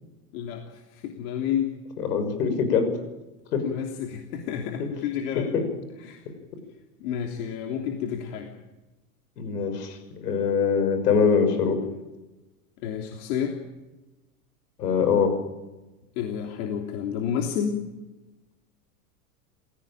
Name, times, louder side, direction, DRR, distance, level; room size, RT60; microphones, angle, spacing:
voice 1, 0.3-1.8 3.6-5.5 6.0-6.2 7.0-8.5 12.8-13.6 16.2-17.8, left 8 dB, 65° left, 3 dB, 3.2 m, -30 dB
voice 2, 2.0-2.9 3.5-3.6 5.5-5.6 9.4-11.8 14.8-15.3, left 6 dB, 85° left, 8 dB, 6.5 m, -23 dB
28.0 x 17.0 x 9.1 m, 1.1 s
supercardioid pair, 115°, 46 cm